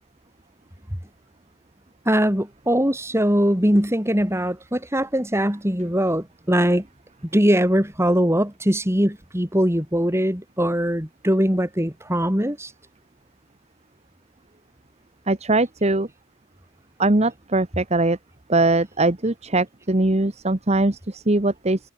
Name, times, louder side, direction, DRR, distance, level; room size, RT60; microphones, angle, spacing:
voice 1, 2.1-6.8 7.3-12.7, equal, 10° right, 3.9 m, -21 dB
voice 2, 15.3-16.1 17.0-18.2 18.5-21.9, right 2 dB, 30° right, 1.1 m, -21 dB
head